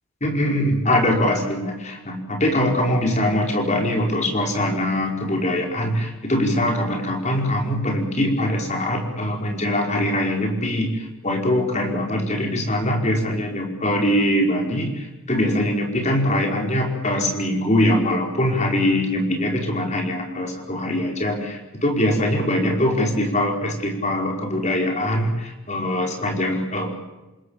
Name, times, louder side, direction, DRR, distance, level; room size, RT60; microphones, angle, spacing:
voice 1, 0.2-26.9, left 1 dB, 30° left, 2 dB, 5.1 m, -22 dB
28.0 x 21.0 x 7.4 m, 1.1 s
head